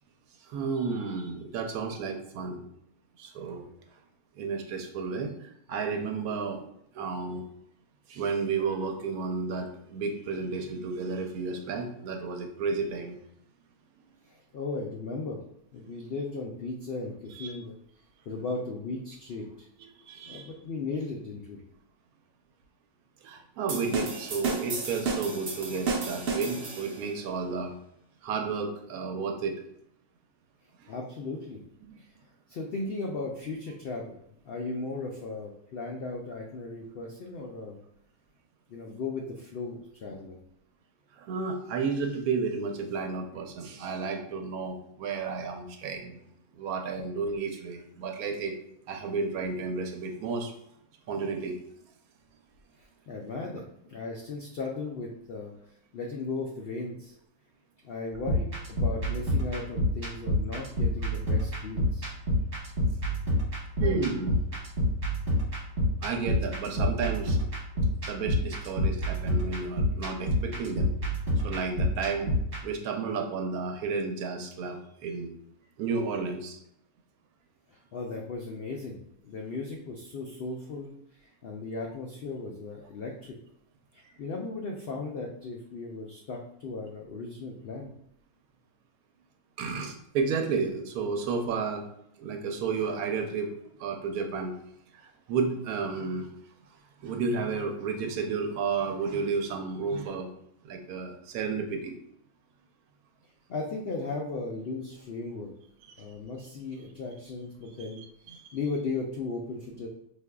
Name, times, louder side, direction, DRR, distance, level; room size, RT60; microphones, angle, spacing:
voice 1, 0.4-2.6 3.2-3.7 4.3-6.6 6.9-7.4 8.1-13.2 17.3-17.5 20.1-20.5 23.2-27.7 28.2-29.6 30.8-30.9 41.1-46.2 46.6-48.5 48.9-50.5 51.1-51.6 63.8-64.4 66.0-67.4 68.1-70.9 71.4-72.3 72.6-75.3 75.8-76.6 89.6-91.8 92.2-93.5 93.8-94.5 94.9-96.3 97.0-100.3 100.6-101.9 106.0-106.1 108.0-108.6, right 4 dB, 80° right, 4 dB, 1.1 m, -32 dB
voice 2, 14.3-15.4 15.7-17.7 18.3-19.7 20.3-21.6 30.9-31.6 32.0-32.1 32.5-34.2 34.4-37.8 38.7-40.4 53.1-55.5 55.9-57.1 57.8-62.1 77.7-83.3 83.9-87.9 103.5-105.5 106.0-108.0 108.5-109.9, left 3 dB, 80° left, -1 dB, 0.5 m, -36 dB
sound 1, 23.7-27.1, right 4 dB, 60° right, 0.7 m, -32 dB
sound 2, 58.1-72.6, left 1 dB, 40° right, 1.2 m, -28 dB
4.7 x 2.6 x 2.2 m, 0.72 s
omnidirectional pair, 1.5 m